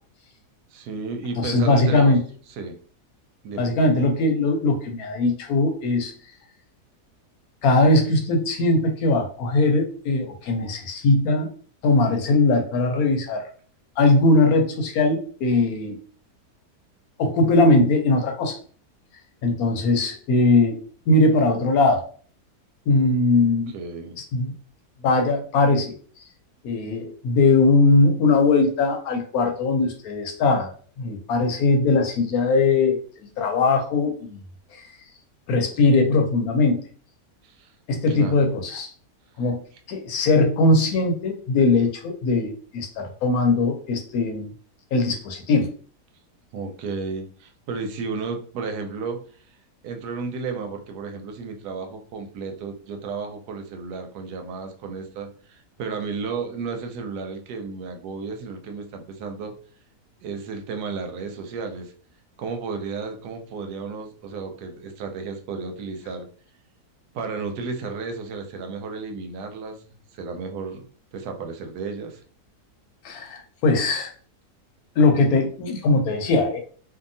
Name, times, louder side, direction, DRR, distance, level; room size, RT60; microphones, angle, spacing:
voice 1, 0.7-2.1 2.6-2.8 3.4-3.7 23.7-24.2 37.4-37.7 38.1-38.5 46.5-49.2 49.8-59.5 60.2-61.9 62.4-66.3 67.1-70.9 71.1-72.2, right 4 dB, 85° right, 5 dB, 1.2 m, -33 dB
voice 2, 1.4-2.2 3.6-6.1 7.6-11.5 11.8-13.4 14.0-16.0 17.2-18.6 19.4-20.8 21.1-22.0 22.9-23.7 24.2-24.5 25.0-25.9 26.6-34.4 34.7-34.9 35.5-36.8 37.9-38.9 39.4-39.6 39.9-44.5 44.9-45.7 73.0-74.1 75.0-76.6, left 3 dB, 75° left, 3 dB, 1.0 m, -20 dB
2.7 x 2.5 x 2.6 m, 0.44 s
omnidirectional pair, 1.7 m